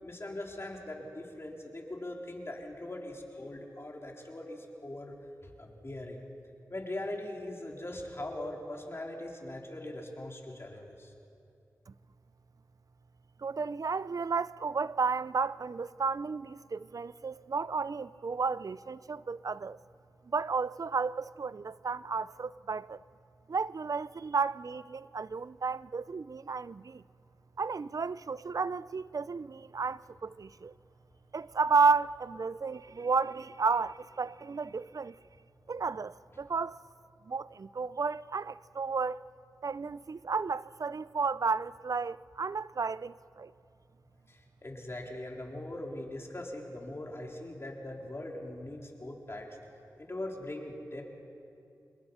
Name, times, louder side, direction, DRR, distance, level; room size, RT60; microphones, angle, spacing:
voice 1, 0.0-5.2 5.4-6.3 6.7-11.1 44.3-49.5 50.0-51.0, left 1 dB, 40° left, 4.0 m, -41 dB
voice 2, 13.4-19.8 20.3-23.0 23.5-27.0 27.6-30.7 31.3-35.2 35.7-36.8 37.3-39.2 39.6-43.5, right 4 dB, 55° right, 0.5 m, -32 dB
28.0 x 21.0 x 5.7 m
cardioid pair, 40°, 7 cm